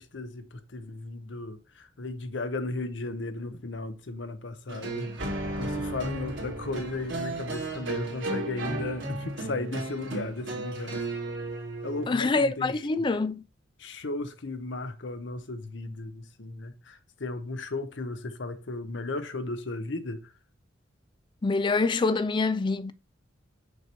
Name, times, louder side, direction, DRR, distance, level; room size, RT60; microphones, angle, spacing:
voice 1, 0.0-11.0 11.8-13.0 13.8-20.3, left 2 dB, 65° left, 0.8 m, -35 dB
sound 1, 4.7-12.1, right 2 dB, 70° right, 2.0 m, -34 dB
voice 2, 12.1-13.4 21.4-22.9, left 3 dB, 25° left, 0.3 m, -25 dB
6.3 x 3.0 x 5.6 m
head